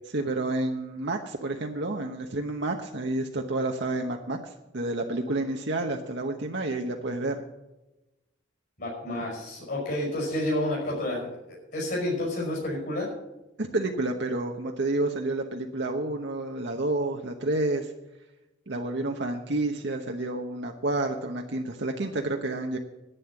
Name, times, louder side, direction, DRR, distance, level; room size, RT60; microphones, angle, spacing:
voice 1, 0.1-7.4 13.6-17.9 18.7-22.8, right 2 dB, 60° right, 2 dB, 1.0 m, -29 dB
voice 2, 8.8-13.1, left 1 dB, 55° left, -3 dB, 5.4 m, -30 dB
11.5 x 9.3 x 7.2 m, 0.98 s
head